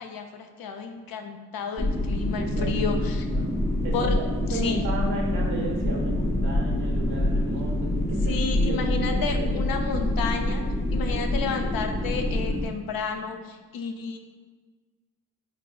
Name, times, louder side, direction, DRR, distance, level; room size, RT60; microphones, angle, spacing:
voice 1, 0.0-3.3 3.9-4.1 4.5-4.8 8.3-10.6 10.9-14.2, left 5 dB, 60° left, 5 dB, 0.5 m, -31 dB
sound 1, 1.8-12.7, left 1 dB, 10° left, 0.4 m, -26 dB
voice 2, 2.5-3.5 3.8-9.6, right 2 dB, 70° right, -1 dB, 0.8 m, -34 dB
4.5 x 2.3 x 2.3 m, 1.4 s
supercardioid pair, 55°, 39 cm